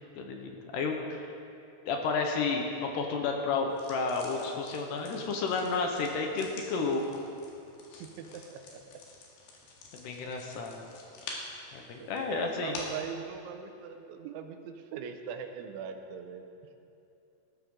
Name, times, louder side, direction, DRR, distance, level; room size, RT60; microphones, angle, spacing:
voice 1, 0.2-1.3 1.9-7.2 7.9-8.0 9.9-10.8 11.7-12.7, left 4 dB, 70° left, 2 dB, 3.0 m, -31 dB
sound 1, 3.7-13.1, left 3 dB, 90° left, 4.3 m, -48 dB
voice 2, 8.0-8.8 10.2-10.3 12.0-16.5, right 7 dB, 85° right, 6 dB, 3.2 m, -41 dB
19.0 x 13.5 x 3.9 m, 2.7 s
omnidirectional pair, 5.3 m